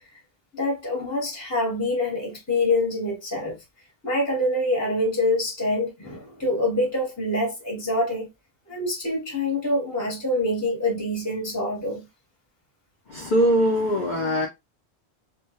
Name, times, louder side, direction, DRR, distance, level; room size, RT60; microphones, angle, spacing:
voice 1, 0.5-3.6 4.0-8.3 8.7-12.1, left 1 dB, 15° left, 0.8 m, -25 dB
voice 2, 13.1-14.5, equal, 55° left, 0.6 m, -21 dB
2.2 x 2.1 x 2.8 m
omnidirectional pair, 1.1 m